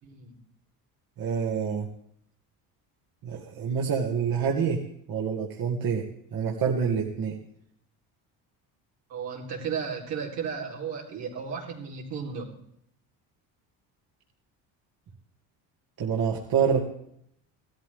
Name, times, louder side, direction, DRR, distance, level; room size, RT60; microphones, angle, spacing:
voice 1, 0.0-0.4 9.1-12.5, right 6 dB, 80° right, -2 dB, 4.1 m, -34 dB
voice 2, 1.2-1.9 3.2-4.8 5.1-6.0 6.3-7.3 16.0-16.8, right 6 dB, 60° right, -2 dB, 2.3 m, -27 dB
16.5 x 13.0 x 3.6 m, 0.71 s
supercardioid pair, 80°, 41 cm